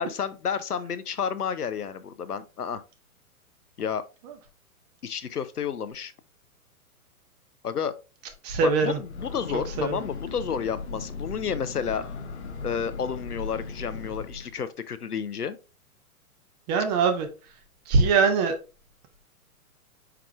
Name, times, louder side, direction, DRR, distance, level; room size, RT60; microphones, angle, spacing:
voice 1, 0.0-2.8 3.8-4.0 5.0-6.1 7.6-7.9 8.6-12.0 12.6-15.6, left 7 dB, 90° left, 0.6 m, -31 dB
voice 2, 8.4-9.0 9.8-10.0 16.7-17.3 17.9-18.6, right 4 dB, 30° right, 0.8 m, -22 dB
Breathing / Train, 8.9-14.6, left 4 dB, 50° left, 0.8 m, -37 dB
4.7 x 4.7 x 2.3 m
figure-of-eight pair, 110°, 44 cm